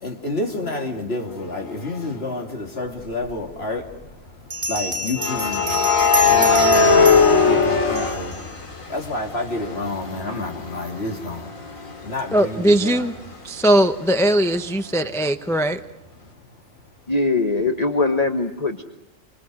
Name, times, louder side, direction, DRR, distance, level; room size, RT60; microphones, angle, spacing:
voice 1, 0.0-3.8 4.7-5.8 6.3-7.0 7.5-8.3 8.9-11.5 12.0-13.1, left 2 dB, 50° left, 2 dB, 3.1 m, -29 dB
sound 1, 1.9-2.1 5.2-9.1 9.5-13.0, left 5 dB, 90° left, 2.8 m, -20 dB
Bell, 3.3-3.4 4.5-8.4, right 1 dB, 60° right, 8.0 m, -27 dB
voice 2, 12.3-13.1 13.4-15.8, right 1 dB, 5° left, 7 dB, 0.7 m, -19 dB
voice 3, 17.1-18.8, left 3 dB, 30° left, 6 dB, 1.4 m, -21 dB
29.0 x 26.0 x 6.4 m, 0.90 s
omnidirectional pair, 1.4 m